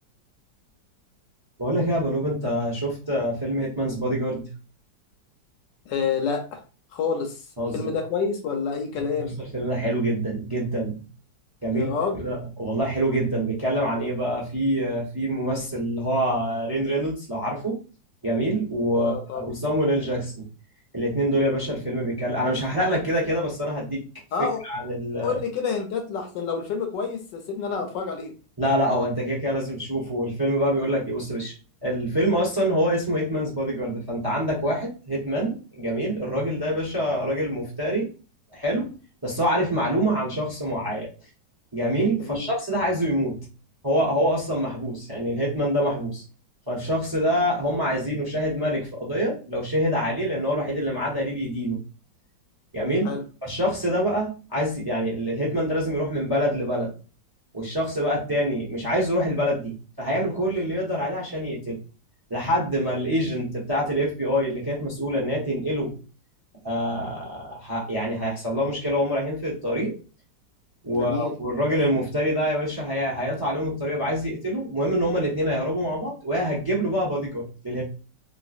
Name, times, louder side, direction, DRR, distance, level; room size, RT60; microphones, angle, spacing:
voice 1, 1.6-4.4 7.6-7.9 9.2-11.0 11.6-11.9 12.2-17.8 18.2-20.5 20.9-24.0 24.6-25.4 28.6-31.5 31.8-38.1 38.5-39.0 39.2-41.1 41.7-43.4 43.8-46.2 46.7-51.8 52.7-53.1 53.4-56.9 57.5-61.8 62.3-66.0 66.6-69.9 70.8-77.8, equal, 20° right, 0.6 m, -25 dB
voice 2, 5.9-6.6 6.9-7.5 7.7-9.4 11.7-12.2 18.9-19.5 24.3-24.6 25.2-28.3 42.2-42.5 53.0-53.2 70.9-71.3, left 5 dB, 75° left, 1.4 m, -28 dB
3.2 x 2.9 x 2.5 m
omnidirectional pair, 2.0 m